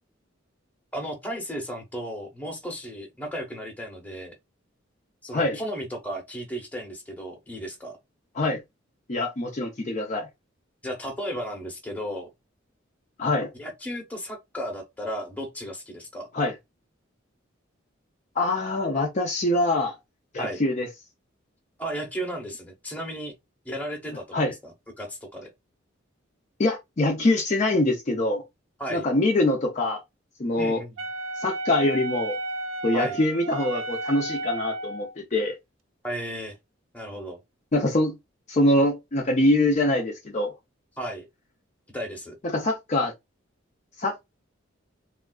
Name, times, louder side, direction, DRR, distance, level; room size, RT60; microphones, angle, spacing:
voice 1, 0.9-4.3 5.2-8.0 10.8-12.3 13.6-16.3 20.4-20.6 21.8-23.4 23.6-25.5 28.8-29.1 30.6-30.9 32.9-33.2 36.0-36.6 36.9-37.4 41.0-41.3 41.9-42.4, equal, 10° left, 0.9 m, -34 dB
voice 2, 9.1-10.3 13.2-13.5 16.3-16.5 18.4-20.0 20.3-20.9 24.3-24.5 26.6-28.4 28.9-30.0 30.4-30.8 31.4-32.4 32.8-35.5 37.7-38.1 38.5-40.5 42.4-43.1 44.0-44.2, left 1 dB, 35° left, 0.5 m, -24 dB
Wind instrument woodwind instrument, 31.0-35.1, right 2 dB, 80° right, 0.4 m, -33 dB
3.4 x 2.4 x 2.3 m
head